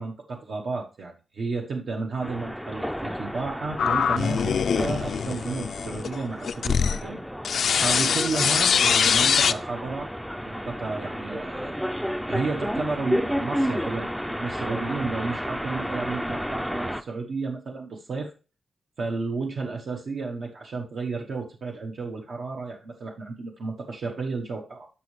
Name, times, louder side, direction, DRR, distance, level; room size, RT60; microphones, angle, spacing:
voice 1, 0.0-7.2 7.5-10.1 10.5-11.7 12.3-18.3 19.0-24.9, right 4 dB, 65° right, 1 dB, 1.1 m, -32 dB
sound 1, 2.2-17.0, equal, ahead, 0.4 m, -32 dB
sound 2, 3.8-7.0 7.4-9.5, left 7 dB, 75° left, 0.4 m, -23 dB
12.5 x 5.6 x 3.2 m, 0.35 s
wide cardioid pair, 155°, 0 cm